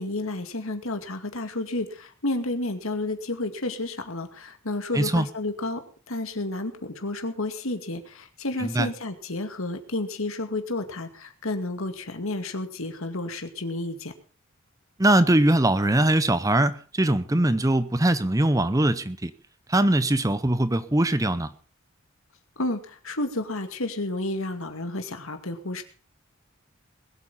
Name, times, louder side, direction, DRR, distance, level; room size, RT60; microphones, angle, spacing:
voice 1, 0.0-14.1 22.6-25.8, left 2 dB, 70° left, 7 dB, 2.2 m, -31 dB
voice 2, 4.9-5.3 8.6-8.9 15.0-19.3 19.7-21.5, right 1 dB, 15° right, 14 dB, 0.7 m, -21 dB
21.0 x 8.4 x 5.6 m, 0.40 s
head